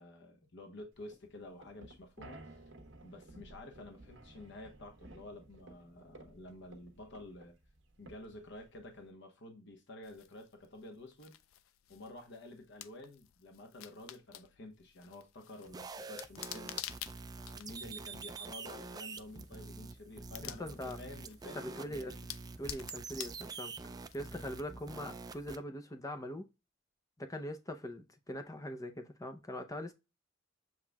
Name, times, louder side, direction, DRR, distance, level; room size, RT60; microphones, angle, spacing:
voice 1, 0.0-2.6 3.0-7.5 8.0-11.3 11.9-16.9 17.4-22.2, left 1 dB, 65° left, 1.1 m, -51 dB
sound 1, 1.0-9.1, right 2 dB, 65° right, 1.2 m, -56 dB
sound 2, 10.0-24.6, left 12 dB, 85° left, 0.4 m, -50 dB
sound 3, 15.6-25.6, right 4 dB, 20° right, 0.4 m, -46 dB
voice 2, 20.4-21.0 21.6-22.1 22.6-23.7 24.1-26.5 27.2-29.9, equal, 15° left, 0.7 m, -42 dB
7.4 x 3.1 x 2.3 m
head